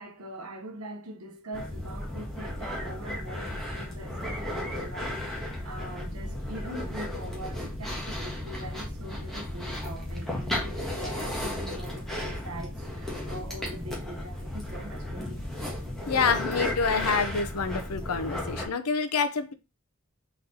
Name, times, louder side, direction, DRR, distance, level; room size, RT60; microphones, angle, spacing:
voice 1, 0.0-15.4, right 1 dB, 70° right, 0.9 m, -42 dB
sound 1, 1.5-18.7, left 1 dB, ahead, 1.3 m, -34 dB
voice 2, 16.1-19.5, left 5 dB, 85° left, 0.6 m, -27 dB
4.2 x 4.0 x 2.8 m
head